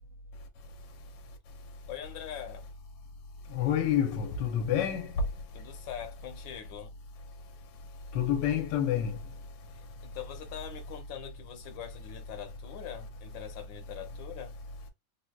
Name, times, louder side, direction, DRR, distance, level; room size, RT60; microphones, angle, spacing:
voice 1, 1.9-2.7 5.5-6.9 9.7-14.6, left 10 dB, 85° left, 1.4 m, -43 dB
voice 2, 3.5-5.1 8.1-9.2, left 10 dB, 70° left, 1.3 m, -28 dB
3.6 x 2.8 x 2.2 m
omnidirectional pair, 2.0 m